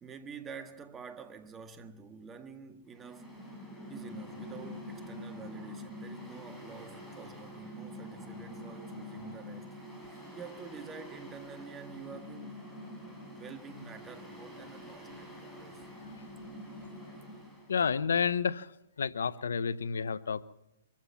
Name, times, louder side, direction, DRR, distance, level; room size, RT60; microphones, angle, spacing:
voice 1, 0.0-3.4 3.9-9.7 10.3-12.6 13.3-15.9, right 6 dB, 20° right, 1.7 m, -48 dB
Mechanical fan, 2.9-17.7, equal, ahead, 6.2 m, -46 dB
voice 2, 17.7-18.7 19.0-20.4, left 6 dB, 75° left, 0.8 m, -30 dB
24.5 x 15.0 x 7.2 m
hypercardioid pair, 125°, 0 cm